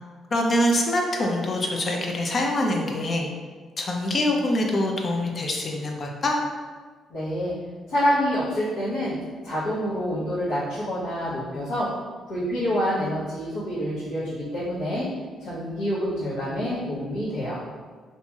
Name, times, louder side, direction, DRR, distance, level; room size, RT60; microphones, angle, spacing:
voice 1, 0.3-3.3 3.8-6.4, left 1 dB, 45° left, 1 dB, 0.5 m, -24 dB
voice 2, 7.1-7.5 7.9-9.1 9.4-11.9 12.3-15.1 15.4-17.6, equal, 85° left, -12 dB, 0.9 m, -27 dB
3.0 x 2.8 x 2.3 m, 1.5 s
cardioid pair, 90°, 0 cm